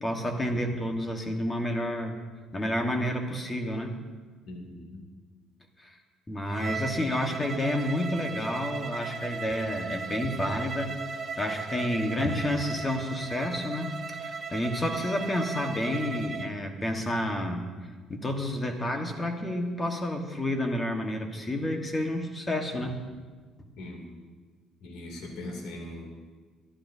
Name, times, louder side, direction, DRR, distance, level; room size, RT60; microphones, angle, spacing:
voice 1, 0.0-2.2 2.5-3.9 5.8-5.9 6.3-10.9 11.4-17.6 18.1-23.0, left 1 dB, 15° left, 4 dB, 1.4 m, -30 dB
voice 2, 4.5-5.0 6.6-6.8 23.8-24.0 24.8-26.1, left 1 dB, 75° left, 1 dB, 2.7 m, -40 dB
Bowed string instrument, 6.5-16.5, right 4 dB, 30° right, 1.1 m, -36 dB
23.5 x 12.5 x 2.8 m, 1.4 s
cardioid pair, 145°, 0 cm